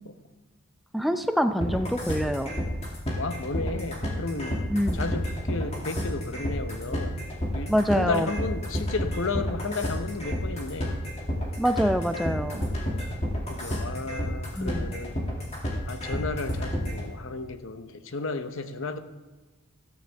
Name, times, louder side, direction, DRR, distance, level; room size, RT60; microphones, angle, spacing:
voice 1, 0.9-2.5 4.7-5.0 7.7-8.3 11.6-12.7 14.6-14.9, equal, ahead, 7 dB, 0.5 m, -25 dB
sound 1, 1.6-17.0, equal, 30° left, 2.3 m, -30 dB
voice 2, 3.2-7.2 7.5-11.0 13.5-15.2 15.9-19.0, left 3 dB, 60° left, 9 dB, 0.9 m, -33 dB
13.5 x 13.5 x 3.5 m, 1.3 s
head